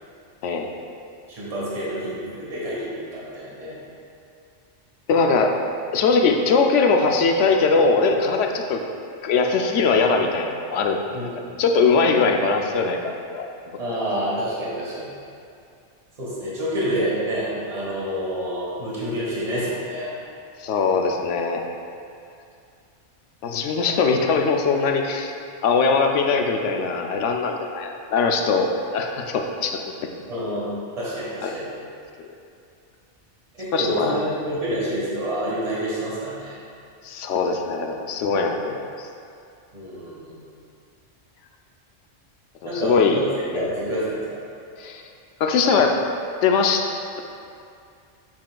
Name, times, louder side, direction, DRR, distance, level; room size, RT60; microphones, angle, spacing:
voice 1, 1.3-3.8 11.1-11.6 13.8-15.1 16.2-20.1 30.3-30.6 31.0-31.7 33.5-36.6 39.7-40.4 42.6-43.2 43.5-44.2, equal, 30° right, -8 dB, 1.7 m, -28 dB
voice 2, 5.1-5.5 5.9-8.8 9.2-11.2 11.6-13.5 20.6-21.6 23.4-25.3 25.6-30.1 31.4-31.6 33.7-34.2 37.0-39.1 42.6-43.2 43.5-43.7 44.8-45.0 45.4-46.0 46.4-46.8, left 4 dB, 85° left, 3 dB, 0.9 m, -21 dB
7.6 x 7.4 x 2.3 m, 2.4 s
omnidirectional pair, 1.2 m